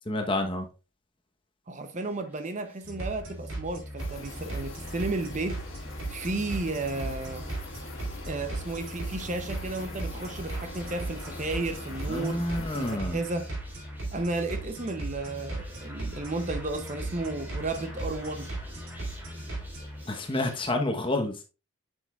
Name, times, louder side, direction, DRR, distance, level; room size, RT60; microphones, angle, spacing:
voice 1, 0.1-0.7 12.1-13.2 20.1-21.4, left 2 dB, 25° left, 0.9 m, -29 dB
voice 2, 1.7-5.6 6.1-7.5 8.3-12.4 12.7-13.5 14.1-18.5, right 2 dB, 35° right, 0.6 m, -33 dB
sound 1, 2.0-20.7, equal, 10° right, 1.9 m, -50 dB
sound 2, 2.8-20.0, right 2 dB, 80° right, 4.0 m, -37 dB
sound 3, 4.0-13.0, left 2 dB, 75° left, 1.6 m, -43 dB
7.8 x 6.4 x 2.3 m
head